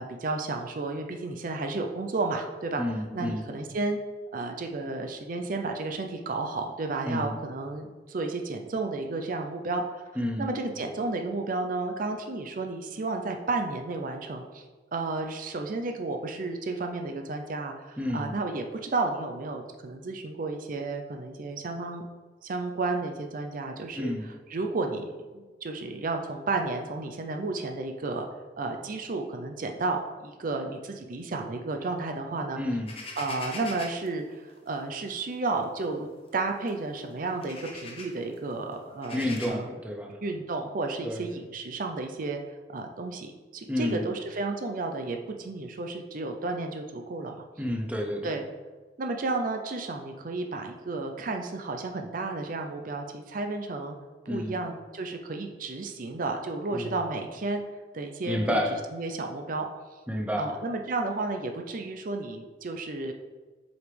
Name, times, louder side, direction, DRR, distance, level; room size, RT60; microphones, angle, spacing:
voice 1, 0.0-4.0 4.3-14.6 14.9-22.0 22.4-25.0 25.3-28.2 28.6-32.6 33.2-36.1 36.3-39.7 40.2-42.4 42.7-47.5 48.2-48.4 49.0-54.0 54.3-57.6 57.9-59.7 60.4-63.1, right 3 dB, 50° right, 4 dB, 0.5 m, -32 dB
voice 2, 2.8-3.5 7.1-7.3 10.2-10.5 18.0-18.3 24.0-24.2 32.6-32.9 39.1-40.2 41.0-41.2 43.7-44.1 47.6-48.4 54.3-54.6 56.7-56.9 58.3-58.8 60.1-60.5, left 1 dB, 10° right, 2 dB, 0.7 m, -30 dB
sound 1, 32.9-34.1 35.2-35.4 35.8-35.9 36.7-36.8 37.2-38.2 38.9-39.5, left 3 dB, 35° left, 1.0 m, -41 dB
7.8 x 5.1 x 3.3 m, 1.3 s
head